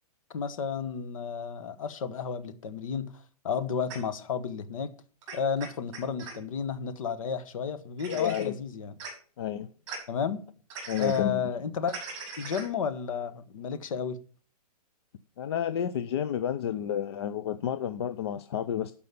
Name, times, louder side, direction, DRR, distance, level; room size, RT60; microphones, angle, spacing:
voice 1, 0.3-3.1 3.4-4.9 5.3-8.9 10.1-10.4 11.0-11.9 12.4-14.2, left 6 dB, 60° left, 1.4 m, -32 dB
sound 1, 3.9-4.0 5.2-6.3 8.0-8.4 9.0-9.1 9.9-10.0 10.7-11.2 11.9-12.7, right 5 dB, 30° right, 5.6 m, -40 dB
voice 2, 8.1-8.6 9.4-9.7 10.9-11.5 15.4-18.9, left 9 dB, 40° left, 0.5 m, -30 dB
12.5 x 5.5 x 6.8 m
hypercardioid pair, 175°, 20 cm